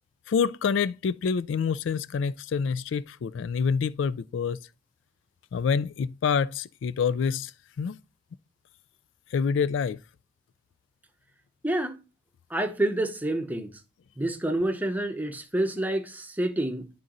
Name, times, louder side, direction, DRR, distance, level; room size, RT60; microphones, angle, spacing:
voice 1, 0.3-4.6 5.5-7.5 7.8-8.0 9.3-10.0, left 6 dB, 70° left, 0.3 m, -27 dB
voice 2, 11.6-12.0 12.5-13.8 14.2-16.9, right 1 dB, 10° right, 0.8 m, -28 dB
10.5 x 3.8 x 3.9 m
head